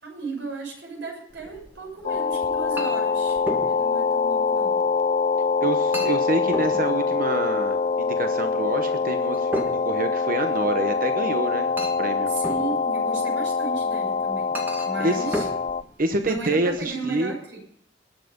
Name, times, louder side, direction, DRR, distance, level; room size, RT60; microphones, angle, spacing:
voice 1, 0.0-3.4 3.7-4.8 12.3-15.5 16.2-17.6, right 3 dB, 75° right, 0 dB, 6.2 m, -35 dB
Chink clink, 1.3-16.8, equal, 10° right, 1.9 m, -38 dB
sound 1, 2.0-15.8, left 5 dB, 40° left, 0.4 m, -24 dB
voice 2, 5.6-11.7 12.0-12.3 15.0-15.3 16.0-17.3, right 2 dB, 50° right, 6 dB, 1.0 m, -27 dB
20.5 x 7.5 x 5.3 m, 0.71 s
head